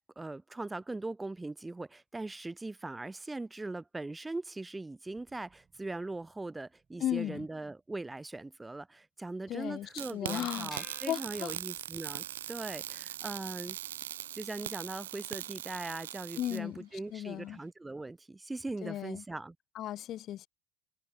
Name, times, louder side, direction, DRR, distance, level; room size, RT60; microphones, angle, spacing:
voice 1, 0.2-13.8 14.3-19.6, right 2 dB, 15° right, 0.9 m, -40 dB
sound 1, 5.1-10.1 11.7-17.4, right 6 dB, 30° right, 7.4 m, -74 dB
voice 2, 7.0-7.5 9.5-10.7 11.1-11.5 16.4-17.6 18.8-19.2 19.8-20.5, left 12 dB, 50° left, 0.5 m, -36 dB
sound 2, 10.0-16.6, right 12 dB, 75° right, 0.4 m, -40 dB
sound 3, 10.7-12.2, left 6 dB, 30° left, 1.0 m, -53 dB
figure-of-eight pair, 65°, 0 cm